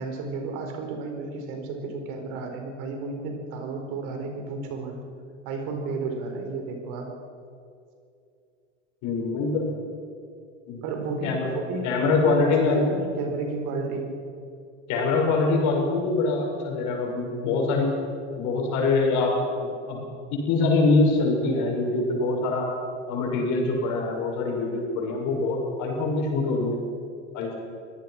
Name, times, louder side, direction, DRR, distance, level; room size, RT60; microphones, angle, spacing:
voice 1, 0.0-5.0 5.4-7.1 10.8-14.1, right 3 dB, 60° right, 4 dB, 4.5 m, -32 dB
voice 2, 9.0-9.7 10.7-10.8 11.2-11.5 11.8-12.9 14.9-17.9 18.4-20.1 20.3-22.7 23.1-26.8 27.3-27.5, left 3 dB, 55° left, 0 dB, 6.9 m, -24 dB
24.5 x 18.0 x 6.0 m, 2.4 s
hypercardioid pair, 85°, 36 cm